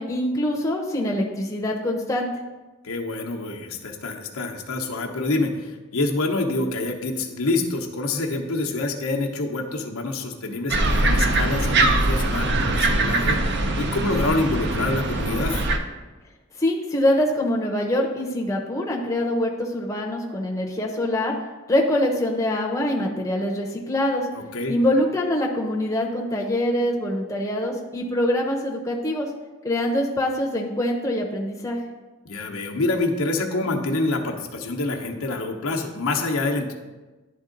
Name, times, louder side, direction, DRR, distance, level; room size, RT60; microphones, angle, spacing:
voice 1, 0.0-2.3 16.6-21.3 21.7-24.3 24.7-29.3 29.6-31.8, left 1 dB, 15° left, -1 dB, 0.7 m, -24 dB
voice 2, 2.8-15.7 24.3-24.7 32.2-36.7, left 2 dB, 90° left, 1 dB, 0.8 m, -26 dB
sound 1, 10.7-15.8, right 2 dB, 55° right, 0.6 m, -22 dB
10.5 x 3.6 x 3.8 m, 1.2 s
head